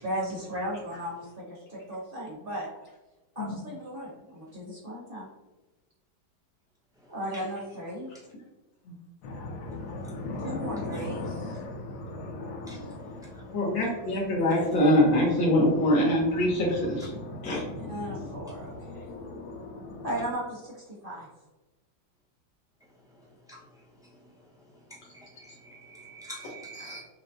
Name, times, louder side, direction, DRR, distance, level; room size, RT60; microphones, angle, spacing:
voice 1, 0.0-2.7 3.3-5.3 7.1-8.1 10.4-11.6 17.9-19.1 20.0-21.3, right 1 dB, 35° right, -4 dB, 1.0 m, -36 dB
sound 1, 9.2-20.3, left 2 dB, 70° left, 1.0 m, -39 dB
voice 2, 13.5-17.1 17.4-17.6 26.4-27.0, left 1 dB, 85° left, -4 dB, 1.7 m, -24 dB
voice 3, 25.1-27.0, right 2 dB, 5° right, -7 dB, 0.4 m, -45 dB
6.2 x 2.2 x 2.6 m, 1.1 s
omnidirectional pair, 2.0 m